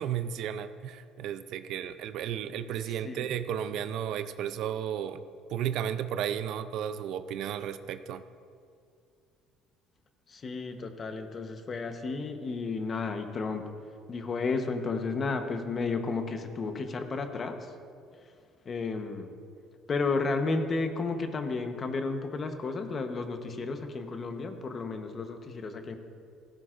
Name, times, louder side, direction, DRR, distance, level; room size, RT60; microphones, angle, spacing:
voice 1, 0.0-5.2 5.5-8.2, right 9 dB, 65° right, 12 dB, 0.5 m, -33 dB
voice 2, 2.8-3.3 10.3-13.7 14.1-17.8 18.2-18.3 18.6-19.3 19.9-26.0, left 4 dB, 30° left, 6 dB, 1.0 m, -32 dB
16.5 x 15.5 x 2.5 m, 2.3 s
cardioid pair, 135°, 0 cm